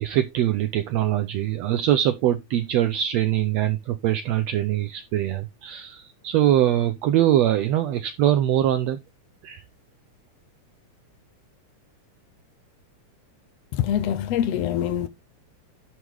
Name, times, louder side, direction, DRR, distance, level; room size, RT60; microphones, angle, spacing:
voice 1, 0.0-9.0 9.4-9.6, right 12 dB, 75° right, 1.7 m, -23 dB
voice 2, 13.7-15.1, left 10 dB, 75° left, 1.5 m, -24 dB
11.0 x 3.7 x 4.9 m
omnidirectional pair, 3.5 m